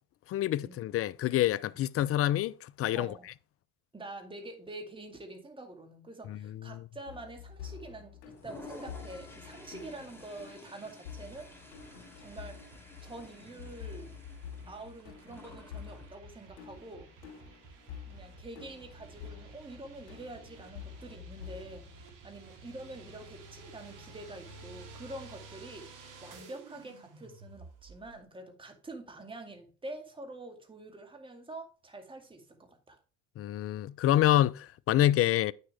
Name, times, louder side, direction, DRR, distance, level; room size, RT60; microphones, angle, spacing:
voice 1, 0.3-3.1 6.3-6.4 6.7-6.8 33.4-35.5, left 13 dB, 40° left, 0.5 m, -27 dB
voice 2, 2.9-3.3 3.9-11.5 12.2-12.6 13.0-14.1 14.7-17.1 18.1-21.9 22.2-33.0, right 2 dB, 15° right, 2.2 m, -46 dB
sound 1, 7.1-22.1, left 8 dB, 85° left, 2.3 m, -48 dB
Toilet flush, 8.3-16.1, left 2 dB, 5° left, 3.2 m, -51 dB
sound 2, 11.3-28.2, right 3 dB, 60° right, 2.6 m, -53 dB
9.0 x 6.6 x 3.4 m
hypercardioid pair, 80°, 36 cm